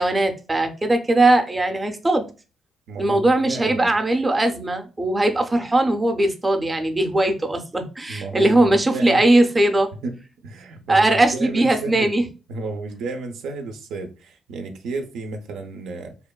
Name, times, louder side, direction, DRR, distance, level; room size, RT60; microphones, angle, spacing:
voice 1, 0.0-2.3 3.0-9.9 10.9-12.2, right 2 dB, 20° right, 0.4 m, -19 dB
voice 2, 2.9-4.0 8.1-9.2 9.9-12.1 12.5-16.2, right 3 dB, 80° right, 0.4 m, -32 dB
2.8 x 2.1 x 2.2 m
cardioid pair, 90°, 0 cm